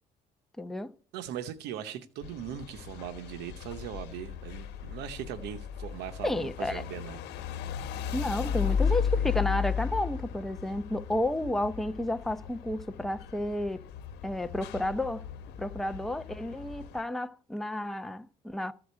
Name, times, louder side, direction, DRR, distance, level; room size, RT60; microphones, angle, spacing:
voice 1, 0.6-0.9 6.2-6.8 8.1-13.9 14.2-15.2 15.6-18.7, left 1 dB, ahead, 0.6 m, -32 dB
voice 2, 1.1-7.2, right 10 dB, 85° right, 0.8 m, -39 dB
sound 1, 2.2-17.0, left 7 dB, 85° left, 1.0 m, -35 dB
14.0 x 4.9 x 8.2 m
cardioid pair, 110°, 17 cm